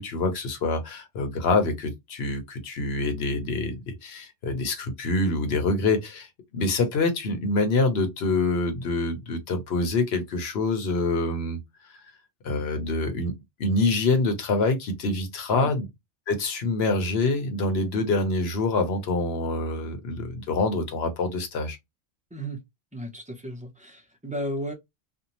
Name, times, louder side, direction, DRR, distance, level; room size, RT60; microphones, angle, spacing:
voice 1, 0.0-11.6 12.4-13.3 13.6-15.9 16.3-21.8, left 3 dB, 65° left, 1.0 m, -26 dB
voice 2, 22.3-22.6 22.9-24.7, equal, 10° right, 0.5 m, -34 dB
2.6 x 2.2 x 2.8 m
omnidirectional pair, 1.2 m